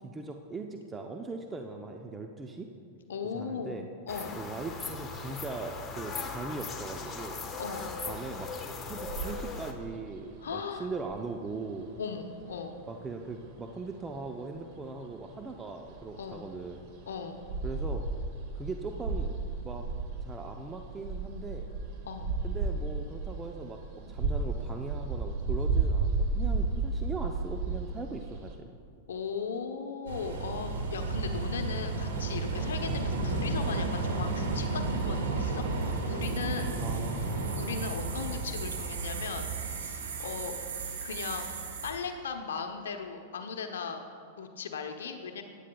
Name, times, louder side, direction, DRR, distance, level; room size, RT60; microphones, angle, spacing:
voice 1, 0.0-2.7 3.3-3.9 4.3-7.4 8.1-8.5 8.8-11.9 12.9-16.9 17.6-18.0 18.5-19.3 19.6-19.9 20.2-21.7 22.4-23.8 24.1-28.7 36.8-37.3, right 3 dB, 20° right, 3 dB, 0.6 m, -40 dB
voice 2, 3.1-4.4 7.6-8.0 10.4-10.9 12.0-12.8 16.2-16.5 17.1-17.4 22.0-22.3 29.1-35.6 36.1-36.8 37.6-39.5 39.8-40.6 41.0-41.5 41.8-45.4, left 5 dB, 80° left, 6 dB, 0.8 m, -37 dB
sound 1, 4.1-9.7, left 4 dB, 25° left, 1.2 m, -39 dB
sound 2, 9.1-28.5, right 3 dB, 55° right, 1.8 m, -34 dB
sound 3, 30.1-41.9, right 3 dB, 80° right, 1.9 m, -33 dB
16.5 x 9.9 x 2.3 m, 2.2 s
hypercardioid pair, 105°, 0 cm